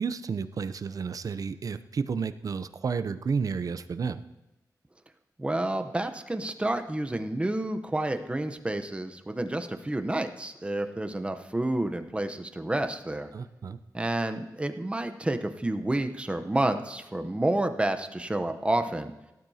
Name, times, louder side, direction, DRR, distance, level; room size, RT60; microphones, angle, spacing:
voice 1, 0.0-4.2 13.3-13.8, right 5 dB, 55° right, 12 dB, 0.5 m, -31 dB
voice 2, 5.4-13.3 13.9-19.1, right 1 dB, 15° right, 7 dB, 0.8 m, -29 dB
18.0 x 12.0 x 2.8 m, 0.97 s
wide cardioid pair, 100°, 7 cm